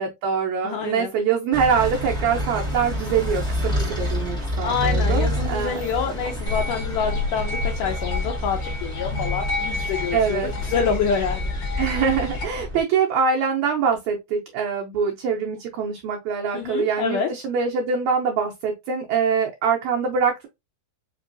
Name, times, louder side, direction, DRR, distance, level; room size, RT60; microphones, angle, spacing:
voice 1, 0.0-5.8 10.1-10.5 11.8-20.5, right 6 dB, 75° right, 1.8 m, -24 dB
voice 2, 0.6-1.1 4.6-11.5 16.5-17.3, left 6 dB, 75° left, 2.2 m, -27 dB
sound 1, 1.5-12.8, equal, 5° left, 0.7 m, -28 dB
sound 2, 6.5-12.4, left 3 dB, 40° left, 1.9 m, -30 dB
5.3 x 3.0 x 2.5 m
omnidirectional pair, 4.0 m